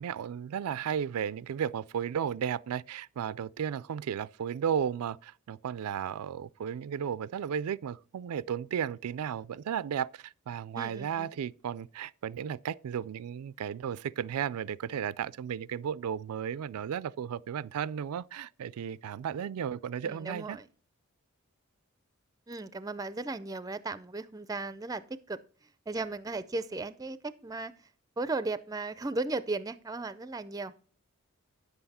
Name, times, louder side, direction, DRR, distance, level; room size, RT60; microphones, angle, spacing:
voice 1, 0.0-20.6, right 8 dB, 85° right, 0.4 m, -34 dB
voice 2, 10.7-11.3 20.0-20.7 22.5-25.4 25.9-27.7 28.2-30.7, right 3 dB, 15° right, 0.4 m, -36 dB
10.0 x 7.9 x 4.2 m
head